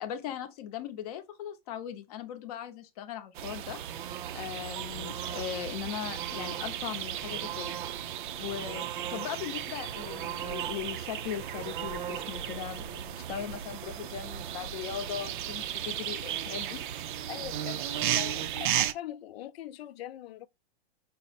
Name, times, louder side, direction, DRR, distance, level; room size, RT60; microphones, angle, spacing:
voice 1, 0.0-4.0 4.3-7.8 8.4-16.8, left 10 dB, 40° left, 0.7 m, -39 dB
sound 1, 3.3-18.9, right 11 dB, 55° right, 0.5 m, -35 dB
voice 2, 17.3-20.5, left 13 dB, 75° left, 0.5 m, -41 dB
5.3 x 2.0 x 4.0 m
supercardioid pair, 165°, 31 cm